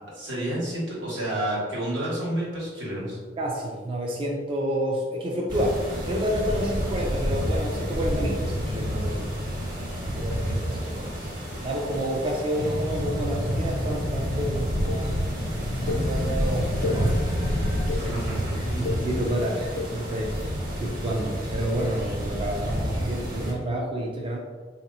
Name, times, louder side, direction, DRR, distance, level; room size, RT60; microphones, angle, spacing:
voice 1, 0.1-3.2 12.5-12.8 17.9-18.8, right 1 dB, 85° right, -6 dB, 1.4 m, -30 dB
voice 2, 3.4-9.3 10.1-11.1 11.6-15.3 15.8-17.2 18.0-18.2 18.8-24.4, equal, 30° right, -2 dB, 0.4 m, -29 dB
sound 1, 5.5-23.5, equal, 50° right, 1.2 m, -29 dB
sound 2, 12.5-17.8, left 1 dB, 40° left, 0.4 m, -33 dB
sound 3, 14.9-15.0 15.9-16.0 16.6-17.0 17.6-18.0 18.7-19.0 19.6-19.9, left 4 dB, 80° left, 0.8 m, -30 dB
4.0 x 2.8 x 2.6 m, 1.5 s
head